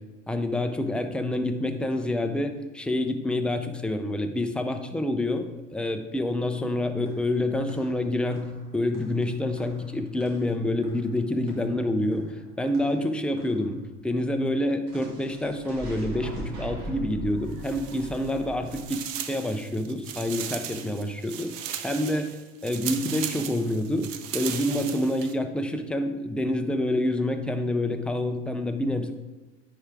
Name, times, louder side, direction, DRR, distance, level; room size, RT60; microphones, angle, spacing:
voice 1, 0.3-8.5 8.7-12.3 12.6-19.0 19.3-22.3 22.6-29.1, left 1 dB, 5° left, 6 dB, 0.5 m, -27 dB
sound 1, 7.1-13.8 14.9-18.8, right 2 dB, 50° right, 2.3 m, -42 dB
sound 2, 17.5-18.4 18.7-25.3, right 10 dB, 75° right, 0.8 m, -37 dB
9.8 x 4.8 x 3.5 m, 1.2 s
supercardioid pair, 105°, 39 cm